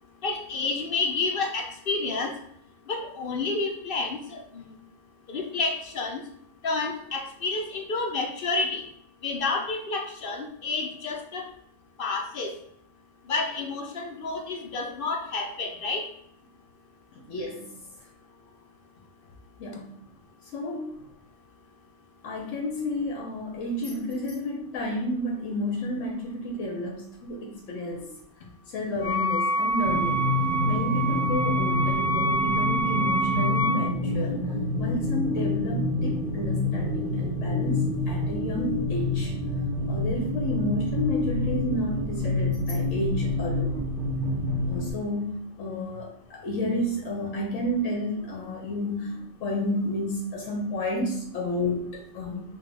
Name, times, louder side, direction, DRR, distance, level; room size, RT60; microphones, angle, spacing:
voice 1, 0.2-2.3 2.9-4.6 5.3-6.2 6.6-8.8 9.2-11.5 12.0-12.5 13.3-16.0, left 3 dB, 55° left, 2 dB, 0.7 m, -29 dB
voice 2, 17.3-17.7 19.6-19.9 20.5-20.9 22.2-28.1 28.7-30.3 30.6-34.4 34.8-39.3 39.9-43.8 44.7-52.4, left 1 dB, 75° left, 0 dB, 1.1 m, -31 dB
Wind instrument woodwind instrument, 29.0-33.9, right 2 dB, 30° left, 1.5 m, -27 dB
sound 1, 29.8-44.9, left 2 dB, 55° right, 0.6 m, -27 dB
5.7 x 2.3 x 3.3 m, 0.68 s
omnidirectional pair, 1.3 m